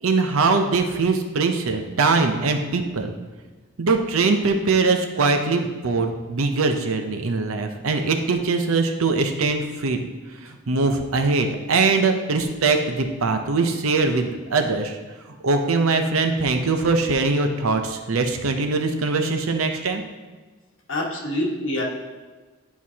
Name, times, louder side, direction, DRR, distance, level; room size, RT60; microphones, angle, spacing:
voice 1, 0.0-3.1 3.8-10.0 10.3-15.0 15.3-20.0, right 3 dB, 80° right, 6 dB, 0.7 m, -22 dB
voice 2, 20.9-21.8, left 1 dB, 65° left, -2 dB, 1.4 m, -26 dB
10.0 x 4.6 x 2.8 m, 1.3 s
head